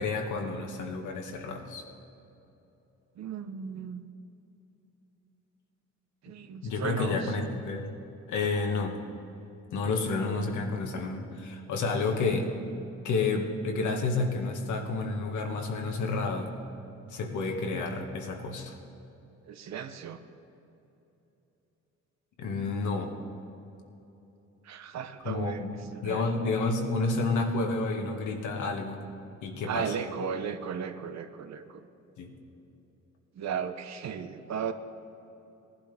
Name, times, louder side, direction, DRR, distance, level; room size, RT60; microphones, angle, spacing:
voice 1, 0.0-1.8 6.6-7.9 8.3-9.0 9.7-12.5 13.0-16.5 17.1-18.7 22.4-23.1 25.3-29.0 29.4-29.9 32.2-32.3, left 3 dB, 75° left, 2 dB, 1.7 m, -30 dB
voice 2, 3.2-4.0 6.2-7.3 19.5-20.2 24.7-25.6 25.9-26.2 29.6-31.8 33.4-34.7, right 7 dB, 65° right, 9 dB, 0.9 m, -35 dB
18.5 x 11.5 x 3.5 m, 3.0 s
cardioid pair, 90°, 30 cm